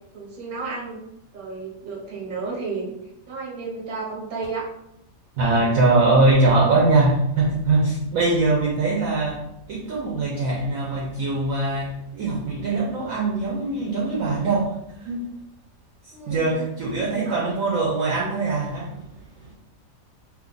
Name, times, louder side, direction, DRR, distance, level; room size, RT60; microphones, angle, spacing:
voice 1, 0.1-1.0 1.3-2.9 3.3-4.7 16.1-16.7 17.3-17.4, right 4 dB, 40° right, -4 dB, 0.9 m, -32 dB
voice 2, 5.4-9.4 9.7-15.2 16.0-19.5, right 2 dB, 65° right, -3 dB, 0.9 m, -22 dB
2.7 x 2.4 x 3.8 m, 0.82 s
omnidirectional pair, 1.8 m